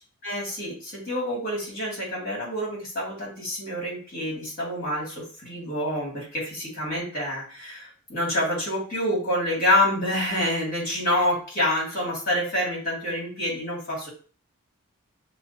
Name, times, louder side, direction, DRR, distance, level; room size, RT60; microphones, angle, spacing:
voice 1, 0.2-14.1, left 1 dB, 40° left, -4 dB, 2.1 m, -27 dB
6.0 x 2.1 x 2.7 m, 0.40 s
head